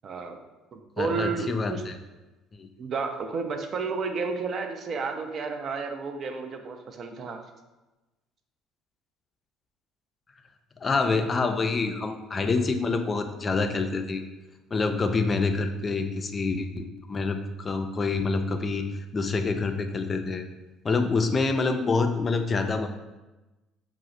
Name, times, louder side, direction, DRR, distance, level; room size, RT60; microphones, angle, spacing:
voice 1, 0.0-0.4 0.7-1.8 2.8-7.4, right 4 dB, 50° right, 5 dB, 0.4 m, -31 dB
voice 2, 1.0-2.0 2.6-2.7 10.8-14.2 14.7-18.9 19.1-20.5 20.8-22.9, left 4 dB, 35° left, 7 dB, 0.3 m, -26 dB
4.7 x 2.0 x 2.6 m, 1.1 s
hypercardioid pair, 60°, 0 cm